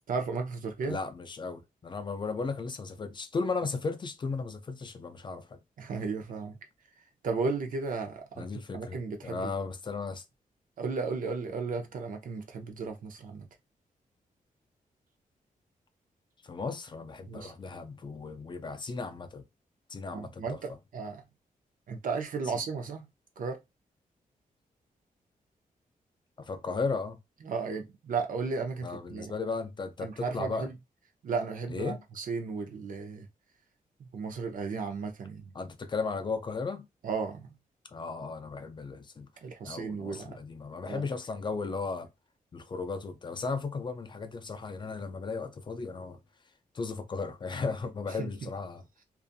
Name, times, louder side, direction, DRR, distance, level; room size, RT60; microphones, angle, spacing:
voice 1, 0.1-1.0 5.8-6.6 7.2-8.4 8.7-9.5 10.8-13.5 17.3-17.5 20.1-21.2 21.9-23.1 23.4-23.6 27.4-29.3 30.0-30.7 31.2-33.3 34.1-35.5 37.0-37.5 39.4-40.4 40.9-41.0 48.2-48.5, right 4 dB, 65° right, 0.6 m, -34 dB
voice 2, 0.9-5.6 8.4-10.2 16.4-19.4 19.9-20.6 26.4-27.2 28.8-30.7 31.7-32.0 35.5-36.9 37.9-39.3 39.6-42.1 42.5-46.2 46.7-48.8, left 4 dB, 35° left, 0.4 m, -35 dB
2.5 x 2.4 x 2.6 m
wide cardioid pair, 145°, 15 cm